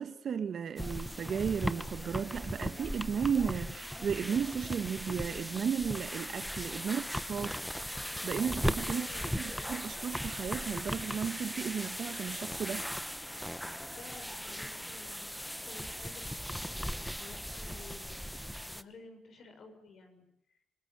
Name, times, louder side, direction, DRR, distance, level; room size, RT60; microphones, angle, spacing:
voice 1, 0.0-7.6 8.2-9.1 9.4-12.9, right 7 dB, 55° right, 1.1 m, -34 dB
sound 1, 0.8-18.8, equal, ahead, 1.0 m, -38 dB
voice 2, 8.9-9.3 13.9-15.3 15.6-16.8 17.1-18.3 18.7-20.2, left 4 dB, 60° left, 6.4 m, -53 dB
26.5 x 20.5 x 9.2 m
cardioid pair, 90°, 0 cm